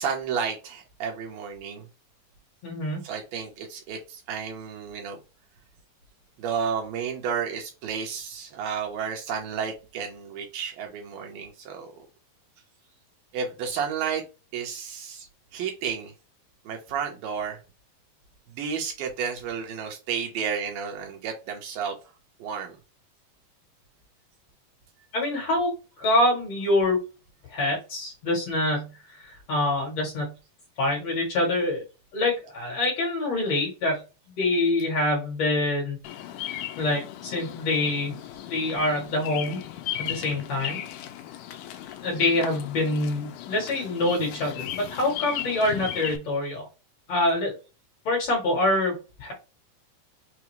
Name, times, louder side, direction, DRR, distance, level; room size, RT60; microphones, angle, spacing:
voice 1, 0.0-1.9 3.0-5.2 6.4-11.9 13.3-14.2 14.5-15.3 15.5-16.1 16.7-17.6 18.5-22.0 22.4-22.8 44.6-44.7, right 6 dB, 75° right, 2 dB, 2.6 m, -32 dB
voice 2, 2.6-3.0 25.1-25.7 26.0-27.0 27.5-30.3 30.8-31.8 32.1-34.0 34.3-36.0 36.8-38.2 38.4-39.6 40.0-40.8 42.0-46.7 47.1-47.5 48.1-49.3, left 2 dB, 55° left, 0 dB, 2.1 m, -25 dB
Bird vocalization bird call bird song, 36.0-46.2, left 12 dB, 90° left, 1.7 m, -37 dB
6.0 x 2.2 x 3.1 m, 0.30 s
omnidirectional pair, 4.2 m